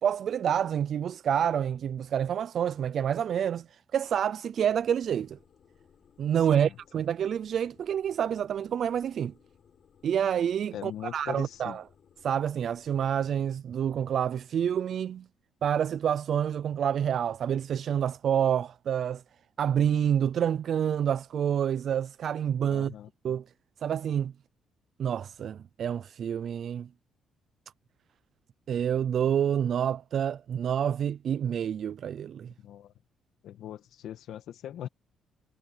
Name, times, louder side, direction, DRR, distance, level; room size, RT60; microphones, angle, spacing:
voice 1, 0.0-3.7 3.9-5.4 6.2-9.3 10.0-11.8 12.2-15.2 15.6-19.2 19.6-22.9 23.2-23.4 23.8-24.3 25.0-26.9 28.7-32.5, right 9 dB, 60° right, 0.5 m, -28 dB
sound 1, 4.7-13.4, left 8 dB, 55° left, 7.9 m, -62 dB
voice 2, 10.7-11.8 22.7-23.1 32.6-32.9 33.4-34.9, left 11 dB, 80° left, 2.0 m, -40 dB
cardioid pair, 90°, 0 cm